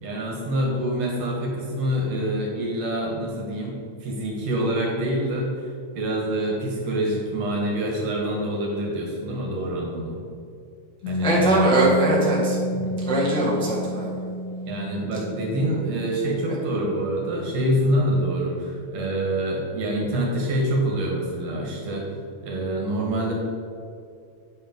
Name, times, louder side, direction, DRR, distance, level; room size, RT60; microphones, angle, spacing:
voice 1, 0.0-5.7 5.9-10.2 11.1-11.8 12.7-13.0 14.7-22.1 22.4-23.3, right 1 dB, 60° right, -1 dB, 2.4 m, -26 dB
Piano, 11.0-18.3, equal, 75° left, 2.1 m, -31 dB
voice 2, 11.2-12.6 13.0-14.1, right 1 dB, 5° left, -6 dB, 0.7 m, -21 dB
8.6 x 5.6 x 5.2 m, 2.4 s
omnidirectional pair, 3.5 m